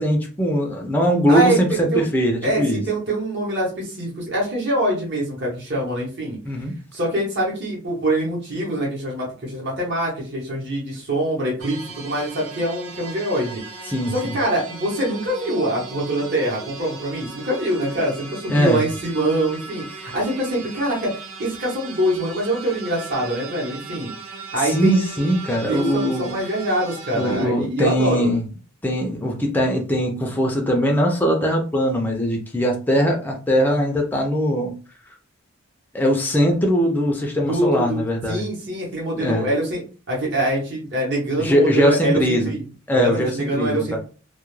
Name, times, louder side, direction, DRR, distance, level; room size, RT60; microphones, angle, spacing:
voice 1, 0.0-2.8 6.4-6.7 13.9-14.3 18.5-18.8 24.6-26.4 27.1-28.4 28.8-34.8 35.9-38.4 39.2-39.5 41.4-42.5 42.9-44.0, equal, 10° left, 1 dB, 0.3 m, -21 dB
voice 2, 1.3-2.1 2.4-6.4 6.9-24.1 24.5-25.2 25.7-28.3 37.4-38.0 38.3-42.6 42.9-44.0, right 1 dB, 50° right, -4 dB, 0.9 m, -24 dB
sound 1, 11.6-27.5, right 4 dB, 85° right, 0.6 m, -38 dB
2.2 x 2.0 x 3.0 m, 0.36 s
head